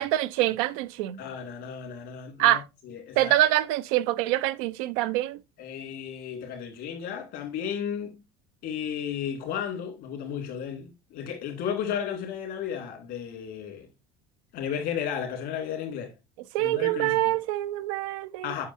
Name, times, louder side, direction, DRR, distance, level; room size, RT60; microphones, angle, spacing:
voice 1, 0.0-1.2 2.4-2.6 3.2-5.4 16.5-18.6, right 15 dB, 70° right, 0.5 m, -25 dB
voice 2, 1.2-3.4 5.6-8.2 8.6-13.9 14.5-16.1 16.6-17.3 18.4-18.7, left 8 dB, 60° left, 2.5 m, -34 dB
8.4 x 5.4 x 2.7 m
hypercardioid pair, 75°, 18 cm